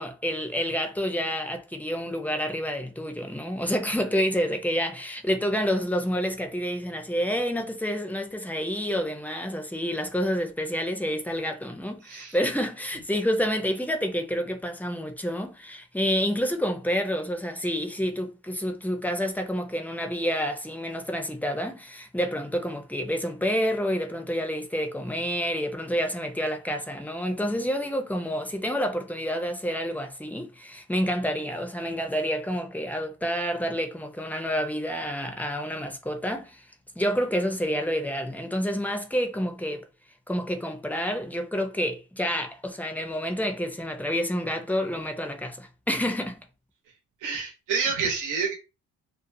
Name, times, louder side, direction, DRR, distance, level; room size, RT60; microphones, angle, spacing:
voice 1, 0.0-36.7 37.0-39.8 40.3-46.5, equal, 5° left, 0.5 m, -28 dB
voice 2, 47.2-48.5, right 5 dB, 85° right, 1.0 m, -28 dB
2.6 x 2.3 x 2.6 m
cardioid pair, 90°, 30 cm